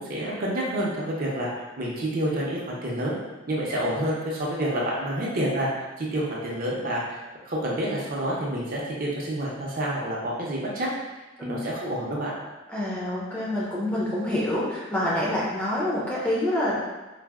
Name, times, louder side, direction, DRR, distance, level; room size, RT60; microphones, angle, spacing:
voice 1, 0.0-1.5 1.8-3.2 3.5-5.7 6.0-7.2 7.5-10.9 11.5-12.3, right 1 dB, 45° right, -4 dB, 0.5 m, -28 dB
voice 2, 12.7-16.8, left 1 dB, 5° left, -8 dB, 0.5 m, -27 dB
3.9 x 2.0 x 2.3 m, 1.1 s
head